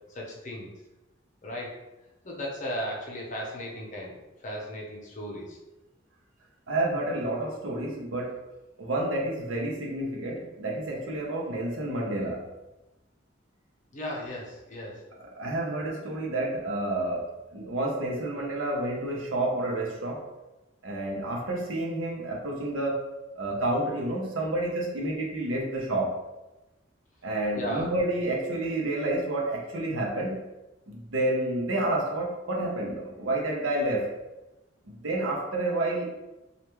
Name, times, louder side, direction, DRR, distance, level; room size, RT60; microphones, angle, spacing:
voice 1, 0.1-0.7 1.4-1.8 2.2-5.6 13.9-15.0 27.5-27.9, equal, 40° left, -2 dB, 0.7 m, -36 dB
voice 2, 6.7-8.4 8.8-12.5 15.4-20.3 20.8-23.1 23.4-26.1 27.2-30.4 30.9-34.1 34.9-36.1, right 1 dB, 80° right, -1 dB, 0.8 m, -29 dB
3.3 x 2.4 x 3.0 m, 1.0 s
head